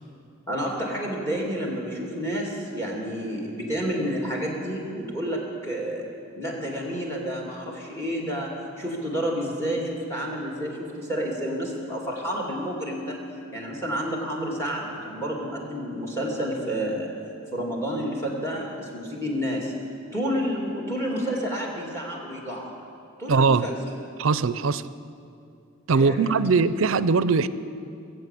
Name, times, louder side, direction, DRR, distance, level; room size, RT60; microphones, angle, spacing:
voice 1, 0.5-6.0 6.4-8.5 8.8-13.2 13.5-17.1 17.5-19.7 20.1-22.7 23.2-23.8 25.9-26.3, equal, 10° left, -1 dB, 2.5 m, -30 dB
voice 2, 23.3-23.7 24.2-24.9 25.9-27.5, right 4 dB, 70° right, 15 dB, 0.5 m, -21 dB
21.5 x 7.9 x 8.3 m, 2.5 s
head